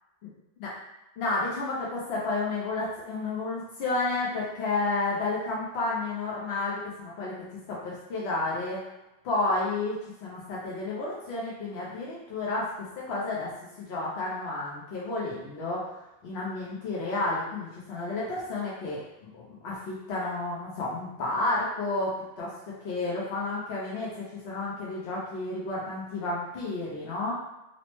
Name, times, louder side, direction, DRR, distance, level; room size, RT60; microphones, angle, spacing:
voice 1, 1.2-7.3 7.7-8.8 9.2-13.5 13.8-27.3, left 2 dB, 70° left, -6 dB, 0.9 m, -31 dB
3.0 x 2.0 x 2.9 m, 0.96 s
omnidirectional pair, 1.2 m